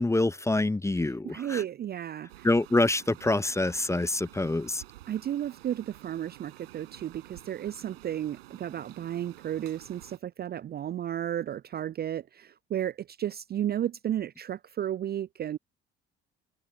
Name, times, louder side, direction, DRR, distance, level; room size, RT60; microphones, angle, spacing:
voice 1, 0.0-1.6 2.4-4.8, left 2 dB, 10° left, 0.8 m, -26 dB
voice 2, 1.0-2.5 5.1-15.6, right 11 dB, 30° right, 0.5 m, -33 dB
sound 1, 2.3-10.2, right 17 dB, 75° right, 7.1 m, -51 dB
figure-of-eight pair, 50°, 30 cm